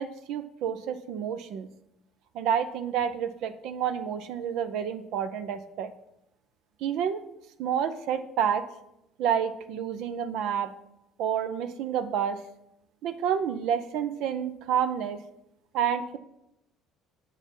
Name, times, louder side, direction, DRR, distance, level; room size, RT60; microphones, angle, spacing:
voice 1, 0.0-1.7 2.3-5.9 6.8-7.2 7.6-8.6 9.2-10.7 11.2-12.4 13.0-15.2 15.7-16.2, right 8 dB, 70° right, 11 dB, 0.6 m, -29 dB
7.2 x 5.7 x 5.4 m, 0.83 s
hypercardioid pair, 70°, 0 cm